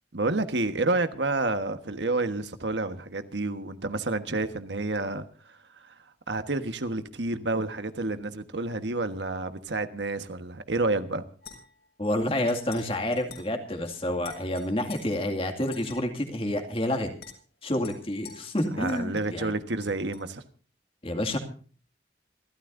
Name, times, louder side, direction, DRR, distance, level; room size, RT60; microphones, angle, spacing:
voice 1, 0.1-5.2 6.3-11.2 18.8-20.4, right 2 dB, 80° right, 9 dB, 1.4 m, -29 dB
sound 1, 11.4-11.9 12.5-12.8 13.1-13.5 13.8-14.0 14.2-15.0 15.7-16.0 16.7-16.8 17.2-17.3 17.8-19.3 19.8-20.2, left 6 dB, 60° left, 6.7 m, -47 dB
voice 2, 12.0-17.1 17.6-19.5 21.0-21.4, left 1 dB, 30° left, 5 dB, 2.3 m, -29 dB
27.0 x 13.5 x 2.6 m, 0.41 s
head